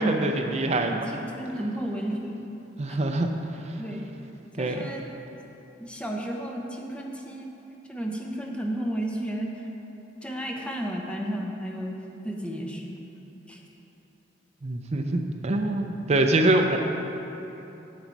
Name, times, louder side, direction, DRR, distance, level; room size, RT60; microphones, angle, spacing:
voice 1, 0.0-1.1 2.8-3.3 4.6-4.8 14.6-16.8, right 2 dB, 35° right, 4 dB, 0.5 m, -24 dB
voice 2, 0.8-2.4 2.9-3.0 3.8-4.1 4.6-5.0 5.8-7.5 7.9-9.7 10.2-11.9 12.2-12.9 13.5-13.6, right 1 dB, 5° left, 0 dB, 0.8 m, -32 dB
9.2 x 7.1 x 4.6 m, 3.0 s
head